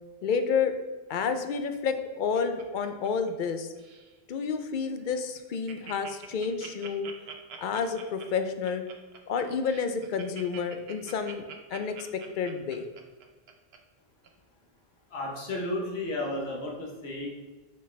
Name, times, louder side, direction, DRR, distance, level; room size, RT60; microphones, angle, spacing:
voice 1, 0.2-0.7 1.1-3.7 4.3-7.1 7.6-8.8 9.3-12.9, left 5 dB, 60° left, 8 dB, 0.6 m, -30 dB
Laughter, 1.7-3.5 3.8-4.1 4.6-4.7 5.0-5.1 5.3-13.8 14.2-14.3, right 6 dB, 80° right, 0.9 m, -45 dB
voice 2, 15.1-17.3, left 1 dB, 90° left, -1 dB, 1.2 m, -33 dB
6.7 x 4.4 x 3.2 m, 1.2 s
omnidirectional pair, 1.0 m